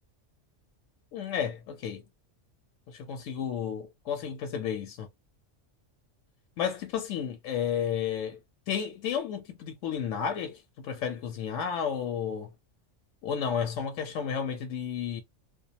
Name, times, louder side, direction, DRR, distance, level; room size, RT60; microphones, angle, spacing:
voice 1, 1.1-2.0 2.9-5.1 6.6-8.4 8.7-12.5 13.2-15.2, left 8 dB, 80° left, 0.9 m, -32 dB
2.4 x 2.2 x 2.7 m
omnidirectional pair, 1.3 m